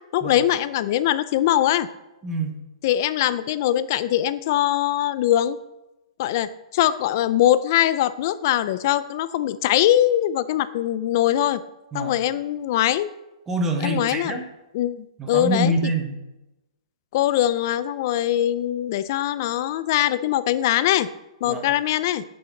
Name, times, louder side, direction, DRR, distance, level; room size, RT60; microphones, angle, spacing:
voice 1, 0.1-1.9 2.8-5.6 6.2-11.6 11.9-13.1 13.8-14.4 14.7-15.7 17.1-21.1 21.4-22.2, left 12 dB, 30° left, 15 dB, 0.4 m, -22 dB
voice 2, 2.2-2.6 11.9-12.2 13.5-14.4 15.2-16.2 21.4-21.7, right 1 dB, 10° right, 4 dB, 1.0 m, -25 dB
8.7 x 6.2 x 7.1 m, 0.99 s
hypercardioid pair, 170°, 3 cm